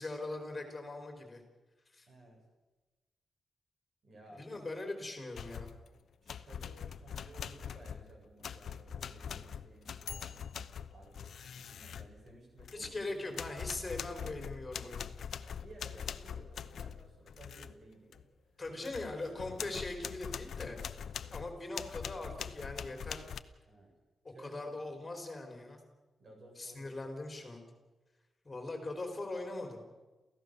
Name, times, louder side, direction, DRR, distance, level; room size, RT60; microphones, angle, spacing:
voice 1, 0.0-1.4 1.9-2.1 4.4-5.7 12.7-15.1 18.6-20.8 21.3-23.2 24.2-25.8 26.6-27.6 28.4-29.8, left 2 dB, 20° left, 4 dB, 4.3 m, -41 dB
voice 2, 2.1-2.4 4.0-4.5 6.2-10.4 10.9-11.3 11.7-13.5 15.4-18.3 18.7-19.7 23.7-23.9 24.3-25.1 26.2-27.0, right 2 dB, 50° right, 1 dB, 7.4 m, -56 dB
sound 1, 5.4-5.9 6.3-13.0 13.3-17.7 18.1-18.3 18.7-23.4, left 7 dB, 70° left, 0.8 m, -43 dB
28.5 x 15.5 x 6.8 m, 1.2 s
wide cardioid pair, 155°, 0 cm